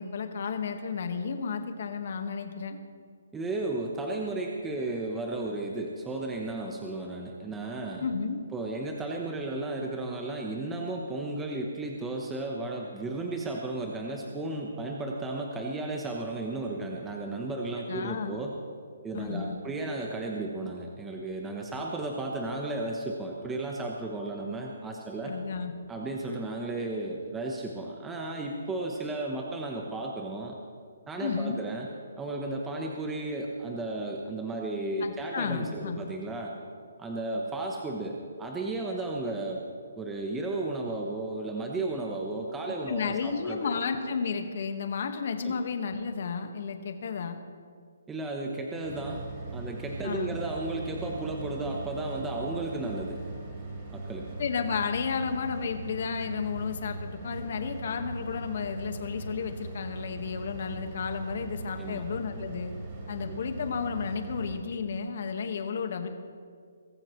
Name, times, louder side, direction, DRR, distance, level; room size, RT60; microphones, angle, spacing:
voice 1, 0.0-2.8 8.0-8.4 17.9-18.4 19.1-19.6 25.2-25.7 31.2-31.6 35.0-36.0 42.9-47.4 50.0-50.4 54.4-62.7 63.1-66.1, left 5 dB, 50° left, 6 dB, 1.6 m, -32 dB
voice 2, 3.3-8.1 8.5-18.5 19.0-25.3 25.9-30.5 31.1-31.9 32.2-36.5 37.0-39.6 40.0-43.8 45.4-45.6 48.1-49.2 49.5-53.2 53.9-54.3 61.8-62.0 63.2-63.4, right 2 dB, 10° right, 0 dB, 1.1 m, -34 dB
sound 1, 48.8-64.6, right 3 dB, 30° right, 3.5 m, -40 dB
22.5 x 14.5 x 3.2 m, 2.1 s
hypercardioid pair, 165°, 0 cm